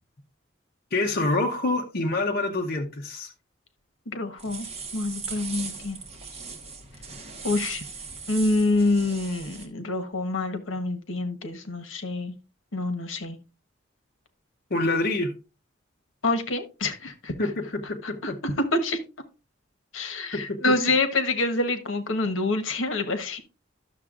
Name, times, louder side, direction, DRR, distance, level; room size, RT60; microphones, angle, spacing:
voice 1, 0.9-3.3 14.7-15.3 17.4-18.4 20.3-20.7, left 2 dB, 50° left, 1 dB, 0.8 m, -26 dB
voice 2, 4.1-4.7 4.9-6.0 7.4-7.8 8.3-12.3 12.7-13.4 16.2-17.3 18.0-19.0 19.9-23.4, left 2 dB, 75° left, 8 dB, 1.1 m, -26 dB
sound 1, 4.4-9.7, right 5 dB, 35° right, 1.3 m, -38 dB
11.5 x 6.7 x 2.5 m, 0.29 s
head